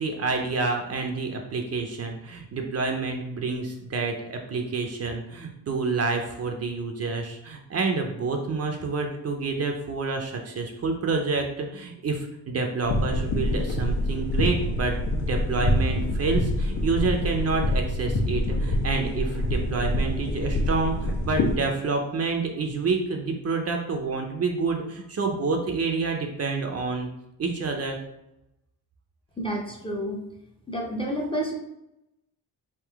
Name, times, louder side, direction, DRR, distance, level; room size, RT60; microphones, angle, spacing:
voice 1, 0.0-27.1 27.4-28.0, right 4 dB, 40° right, 3 dB, 0.5 m, -28 dB
sound 1, 12.8-21.6, left 1 dB, 85° left, 1.2 m, -26 dB
voice 2, 29.4-30.2 30.7-31.5, equal, 15° left, 0 dB, 0.6 m, -29 dB
3.7 x 2.7 x 4.5 m, 0.87 s
cardioid pair, 140°, 40 cm